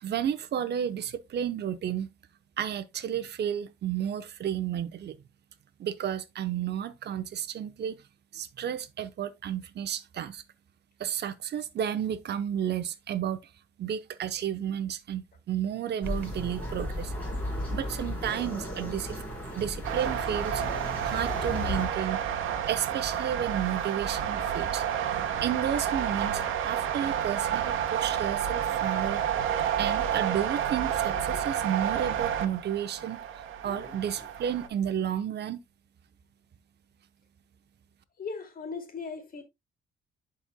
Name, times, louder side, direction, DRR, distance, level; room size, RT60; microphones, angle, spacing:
voice 1, 0.0-2.1 2.6-5.2 5.8-8.0 8.3-10.4 11.0-13.4 13.8-17.1 17.7-19.2 19.5-20.6 21.0-22.2 22.7-24.8 25.4-29.2 29.8-33.2 33.6-35.6, right 9 dB, 60° right, 0.8 m, -32 dB
sound 1, 16.0-21.9, left 1 dB, 10° left, 4.1 m, -35 dB
sound 2, 19.8-34.7, right 9 dB, 85° right, 1.1 m, -30 dB
voice 2, 31.1-31.4 33.6-34.0 38.2-39.4, left 5 dB, 45° left, 2.5 m, -40 dB
11.0 x 4.4 x 2.2 m
cardioid pair, 90°, 20 cm